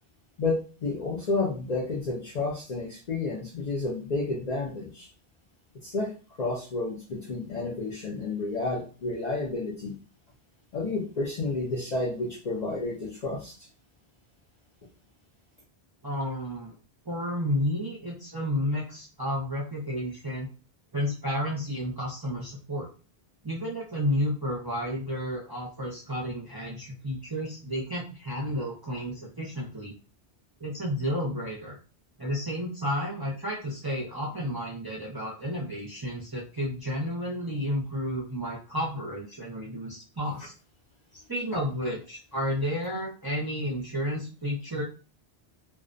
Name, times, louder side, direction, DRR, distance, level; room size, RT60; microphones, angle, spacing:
voice 1, 0.4-5.1 5.8-6.1 6.4-9.9 10.7-13.5 41.5-41.6, left 3 dB, 50° left, -3 dB, 0.5 m, -31 dB
voice 2, 16.0-16.8 17.1-20.5 20.9-22.9 23.4-30.0 30.6-31.8 32.2-40.5 41.1-44.8, equal, 30° right, -5 dB, 0.5 m, -31 dB
2.3 x 2.1 x 2.5 m, 0.36 s
omnidirectional pair, 1.1 m